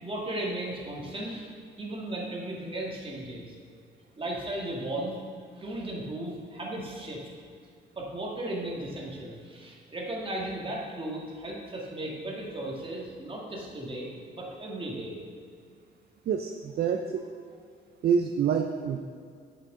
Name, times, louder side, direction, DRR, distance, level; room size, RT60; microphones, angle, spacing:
voice 1, 0.0-1.5 1.8-3.5 4.2-5.2 5.6-7.2 8.0-15.2, right 1 dB, 25° right, -2 dB, 1.9 m, -36 dB
voice 2, 16.3-17.2 18.0-19.0, right 7 dB, 55° right, 6 dB, 0.5 m, -27 dB
8.1 x 6.3 x 3.8 m, 2.3 s
cardioid pair, 90°, 20 cm